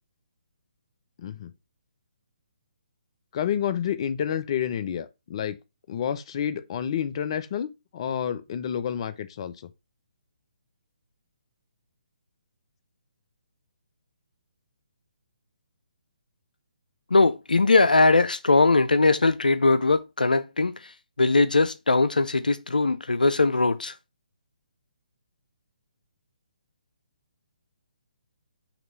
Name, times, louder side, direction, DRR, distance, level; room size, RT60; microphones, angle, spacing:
voice 1, 1.2-1.5 3.3-5.6 5.9-9.7, left 9 dB, 40° left, 0.7 m, -29 dB
voice 2, 17.1-20.7 21.2-23.9, left 3 dB, 85° left, 0.6 m, -20 dB
5.9 x 3.0 x 5.4 m
figure-of-eight pair, 145°, 4 cm